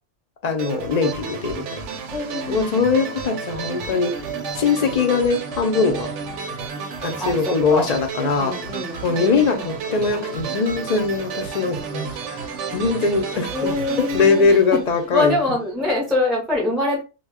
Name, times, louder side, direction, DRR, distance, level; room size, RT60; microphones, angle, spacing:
voice 1, 0.4-1.7 2.5-4.1 4.5-6.1 7.0-8.5 9.0-12.4 12.7-13.7 14.0-15.4, left 4 dB, 50° left, 4 dB, 0.5 m, -21 dB
sound 1, 0.6-15.4, right 5 dB, 85° right, 0.9 m, -31 dB
voice 2, 2.1-2.8 7.2-7.9 8.4-9.6 13.5-14.8 15.1-17.0, left 2 dB, ahead, -2 dB, 0.5 m, -24 dB
2.2 x 2.1 x 3.3 m, 0.30 s
omnidirectional pair, 1.2 m